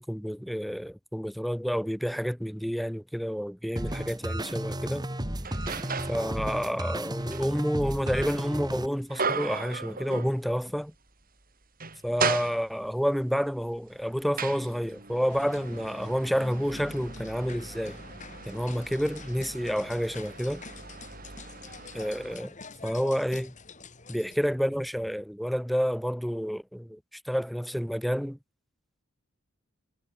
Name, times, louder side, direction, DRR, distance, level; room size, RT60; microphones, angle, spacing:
voice 1, 0.0-5.1 6.1-10.9 12.0-18.0 18.5-20.6 21.9-22.5 22.8-23.5 24.1-28.4, equal, ahead, 1.3 m, -29 dB
sound 1, 3.8-8.9, right 1 dB, 20° right, 3.5 m, -33 dB
sound 2, 4.1-4.2 4.7-6.3 6.7-10.8 11.1-11.2 11.6-13.1 13.7-22.4, right 5 dB, 45° right, 6.4 m, -37 dB
sound 3, 15.3-24.4, left 3 dB, 35° left, 2.7 m, -47 dB
head